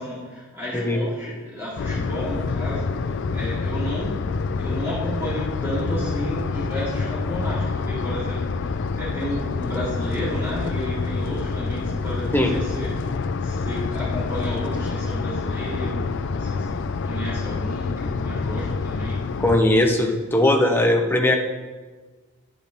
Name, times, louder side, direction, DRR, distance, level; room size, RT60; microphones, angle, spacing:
voice 1, 0.0-16.8 17.0-19.2, equal, 10° right, -10 dB, 3.5 m, -32 dB
sound 1, 1.8-19.6, left 4 dB, 55° left, 0.4 m, -27 dB
voice 2, 19.4-21.4, left 1 dB, 10° left, 2 dB, 0.9 m, -19 dB
10.5 x 10.0 x 3.6 m, 1.3 s
head